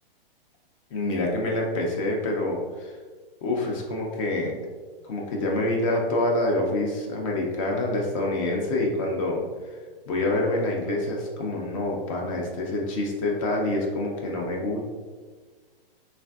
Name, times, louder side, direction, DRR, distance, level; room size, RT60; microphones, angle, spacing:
voice 1, 0.9-3.0 3.4-4.5 5.0-9.4 10.1-14.8, left 2 dB, 35° left, -1 dB, 0.5 m, -26 dB
3.3 x 2.4 x 2.2 m, 1.4 s
hypercardioid pair, 135°, 30 cm